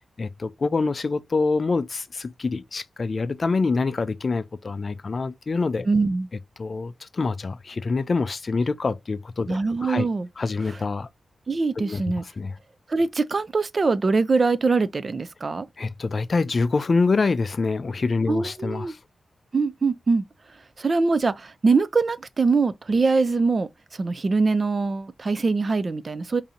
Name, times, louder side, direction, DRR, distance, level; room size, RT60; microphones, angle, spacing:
voice 1, 0.2-5.9 6.6-10.1 10.4-11.1 11.8-12.0 12.4-12.6 15.8-19.0, left 4 dB, 40° left, 0.4 m, -25 dB
voice 2, 5.9-6.3 9.5-10.3 11.5-12.2 12.9-15.7 18.3-18.9 19.5-20.2 20.8-26.4, right 4 dB, 35° right, 0.3 m, -23 dB
5.0 x 2.6 x 2.8 m
wide cardioid pair, 160°, 0 cm